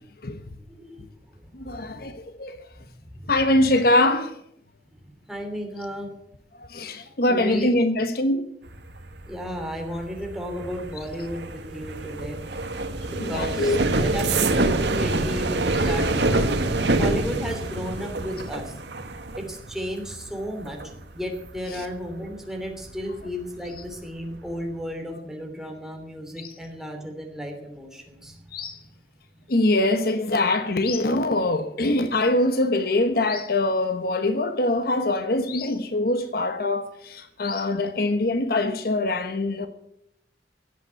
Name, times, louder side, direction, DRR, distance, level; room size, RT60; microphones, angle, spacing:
voice 1, 0.7-1.0 1.6-2.1 2.8-2.9 3.1-3.3 4.9-5.0 5.3-6.1 7.3-7.8 9.3-12.4 13.1-16.6 16.9-18.7 19.4-28.4, equal, 5° right, 3.0 m, -34 dB
voice 2, 1.5-2.6 3.3-4.3 6.6-8.4 13.2-13.8 21.7-21.8 26.4-26.5 28.5-28.8 29.5-39.7, left 2 dB, 60° left, 1.1 m, -23 dB
sound 1, 8.7-23.3 23.6-24.1 24.3-24.7, right 2 dB, 75° right, 1.4 m, -27 dB
17.0 x 8.3 x 8.3 m
head